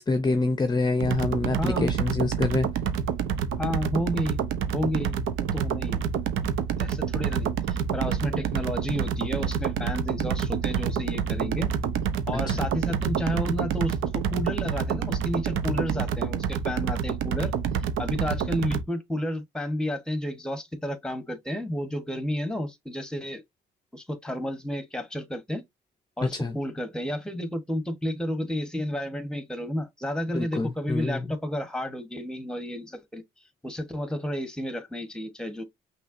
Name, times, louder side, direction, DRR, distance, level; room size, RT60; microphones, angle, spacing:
voice 1, 0.0-2.7 12.3-12.6 26.2-26.6 30.3-31.3, left 3 dB, 20° left, 0.6 m, -26 dB
sound 1, 1.0-18.8, right 7 dB, 85° right, 0.8 m, -28 dB
voice 2, 1.5-1.9 3.6-4.4 4.7-6.1 6.8-11.7 12.3-17.5 18.0-23.4 23.9-25.6 26.2-33.2 33.6-35.6, left 1 dB, 5° left, 1.2 m, -31 dB
5.5 x 3.2 x 2.6 m
cardioid pair, 90°, 20 cm